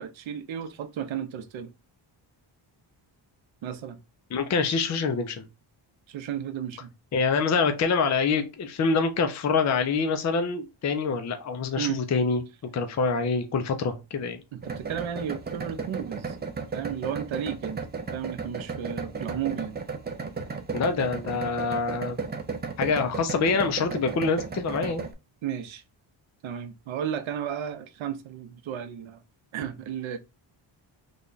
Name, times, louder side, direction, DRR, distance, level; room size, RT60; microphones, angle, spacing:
voice 1, 0.0-1.7 3.6-4.0 6.1-6.9 11.8-12.0 14.5-16.4 16.7-17.8 18.1-19.8 25.4-25.8 26.4-29.2 29.5-30.2, right 9 dB, 75° right, 0.6 m, -33 dB
voice 2, 4.3-5.4 7.1-12.4 12.7-14.4 20.7-22.2 22.8-25.0, left 4 dB, 40° left, 0.4 m, -25 dB
sound 1, 14.6-25.1, right 5 dB, 25° right, 0.3 m, -34 dB
3.3 x 2.2 x 3.8 m
wide cardioid pair, 170°, 47 cm